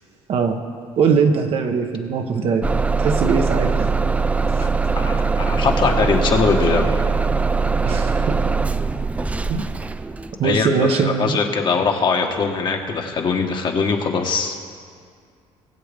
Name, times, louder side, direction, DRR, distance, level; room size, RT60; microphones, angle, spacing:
voice 1, 0.3-0.6 1.0-3.9 7.8-8.4 9.5-9.6 10.4-11.4, right 5 dB, 55° right, 5 dB, 1.1 m, -21 dB
Bus / Engine starting, 2.6-10.4, right 4 dB, 10° right, 0.3 m, -21 dB
voice 2, 4.6-6.9 10.4-14.6, left 5 dB, 45° left, 2 dB, 1.4 m, -21 dB
21.5 x 7.8 x 3.6 m, 2.1 s
cardioid pair, 105°, 12 cm